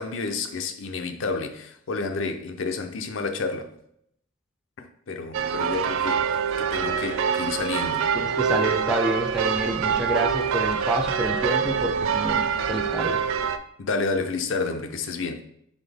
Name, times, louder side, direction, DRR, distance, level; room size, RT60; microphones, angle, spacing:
voice 1, 0.0-3.7 4.8-6.3 6.6-8.1 13.8-15.4, left 4 dB, 70° left, 0.5 m, -30 dB
sound 1, 5.3-13.6, right 7 dB, 85° right, 0.3 m, -25 dB
voice 2, 8.2-13.2, right 1 dB, 5° right, 0.4 m, -28 dB
4.1 x 3.5 x 3.4 m
head